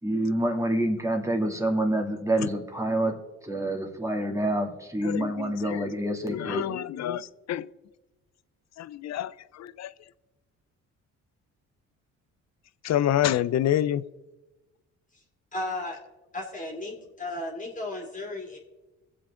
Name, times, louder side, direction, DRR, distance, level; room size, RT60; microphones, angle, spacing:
voice 1, 0.0-3.1 3.4-6.7, right 1 dB, 10° right, 2 dB, 2.5 m, -27 dB
voice 2, 5.0-5.9 6.3-7.7 8.8-9.9 12.8-14.0, left 11 dB, 60° left, 18 dB, 0.6 m, -28 dB
voice 3, 15.5-16.0 16.3-18.6, left 2 dB, 25° left, 0 dB, 2.9 m, -34 dB
23.5 x 7.8 x 3.8 m, 1.1 s
cardioid pair, 90°, 30 cm